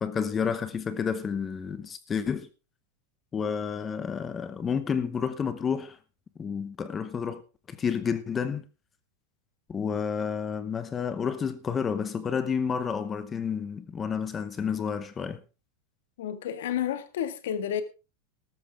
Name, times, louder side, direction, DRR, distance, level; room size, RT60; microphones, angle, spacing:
voice 1, 0.0-2.5 3.3-6.0 6.4-7.4 7.7-8.6 9.7-15.4, left 6 dB, 15° left, 0.8 m, -30 dB
voice 2, 16.2-17.8, left 10 dB, 70° left, 1.7 m, -30 dB
13.5 x 13.0 x 3.5 m
supercardioid pair, 175°, 0 cm